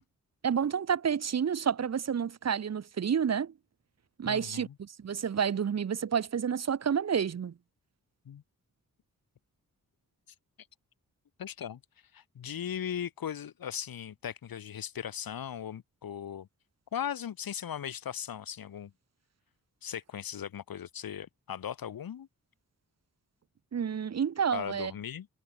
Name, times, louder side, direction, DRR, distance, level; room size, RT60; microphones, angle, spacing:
voice 1, 0.4-3.5 4.2-7.5 23.7-24.9, right 7 dB, 50° right, 0.8 m, -29 dB
voice 2, 4.2-4.8 8.3-8.4 11.4-11.8 12.1-16.5 16.9-18.9 19.8-22.3 24.5-25.3, left 9 dB, 85° left, 2.1 m, -38 dB
cardioid pair, 65°, 34 cm